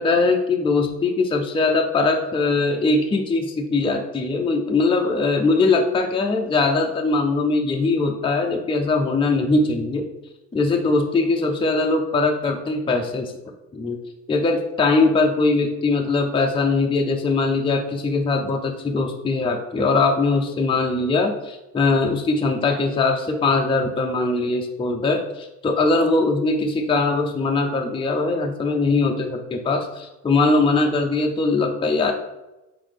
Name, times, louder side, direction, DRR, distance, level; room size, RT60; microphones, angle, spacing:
voice 1, 0.0-10.1 10.5-13.3 13.7-14.0 14.3-32.1, left 3 dB, 15° left, 2 dB, 0.5 m, -21 dB
4.0 x 3.9 x 3.3 m, 0.99 s
cardioid pair, 90°, 34 cm